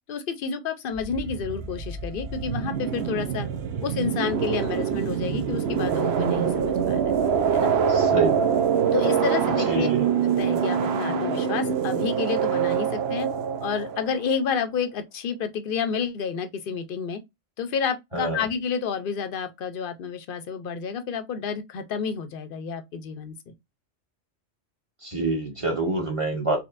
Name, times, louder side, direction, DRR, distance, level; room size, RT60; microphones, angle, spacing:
voice 1, 0.1-3.5 3.8-7.0 7.5-7.7 8.9-9.9 10.4-13.3 13.6-17.2 17.6-23.5, left 6 dB, 55° left, 0.8 m, -30 dB
sound 1, 0.9-14.3, right 7 dB, 65° right, 0.9 m, -25 dB
voice 2, 7.9-8.5 9.7-10.1 18.1-18.5 25.0-26.6, right 3 dB, 25° right, 1.3 m, -26 dB
4.3 x 2.9 x 2.5 m
omnidirectional pair, 1.2 m